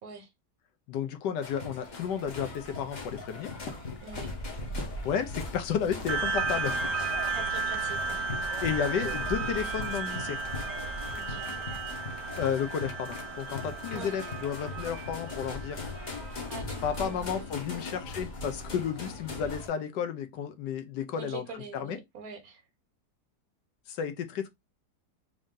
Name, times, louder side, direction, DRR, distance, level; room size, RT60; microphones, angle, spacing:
voice 1, 0.9-3.5 5.0-6.8 8.6-10.4 12.4-15.8 16.8-21.4 21.7-22.0 23.9-24.5, left 7 dB, 80° left, 1.3 m, -32 dB
sound 1, 1.4-19.7, left 2 dB, 35° left, 0.7 m, -40 dB
sound 2, 1.8-14.5, left 4 dB, 55° left, 1.2 m, -50 dB
voice 2, 4.0-4.3 7.0-8.3 11.1-11.9 13.9-14.2 16.5-17.9 21.1-22.6, right 3 dB, 60° right, 1.2 m, -45 dB
sound 3, 6.1-17.0, right 4 dB, 80° right, 1.2 m, -34 dB
3.6 x 2.6 x 3.6 m
omnidirectional pair, 1.9 m